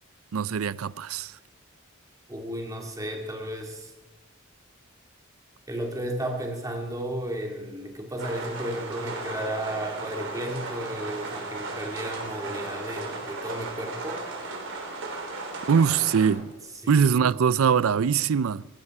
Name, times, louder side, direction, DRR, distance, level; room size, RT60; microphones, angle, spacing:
voice 1, 0.3-1.4 15.7-16.5 16.9-18.6, right 6 dB, 90° right, 0.5 m, -22 dB
voice 2, 2.3-3.9 5.7-14.2 16.8-17.4, right 1 dB, 15° right, 2.5 m, -33 dB
sound 1, 8.2-16.3, right 3 dB, 60° right, 3.8 m, -36 dB
18.5 x 16.0 x 4.8 m
head